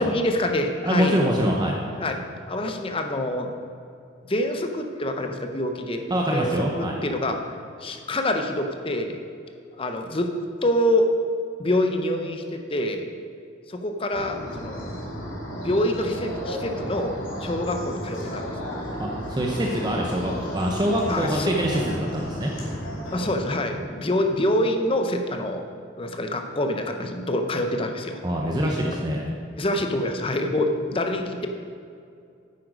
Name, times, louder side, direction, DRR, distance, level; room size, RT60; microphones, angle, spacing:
voice 1, 0.0-1.2 2.0-2.2 2.5-3.5 4.3-6.5 6.8-7.4 7.8-9.2 9.7-10.3 10.6-11.1 11.6-13.1 13.7-14.9 15.6-18.5 21.1-21.6 23.1-25.7 26.0-28.2 29.6-31.5, left 1 dB, 25° left, 5 dB, 0.6 m, -26 dB
voice 2, 0.8-1.8 6.1-7.0 19.0-22.5 28.2-29.2, equal, 20° right, -1 dB, 0.7 m, -24 dB
sound 1, 14.1-23.2, equal, 70° left, 2.7 m, -33 dB
9.4 x 8.0 x 5.0 m, 2.4 s
head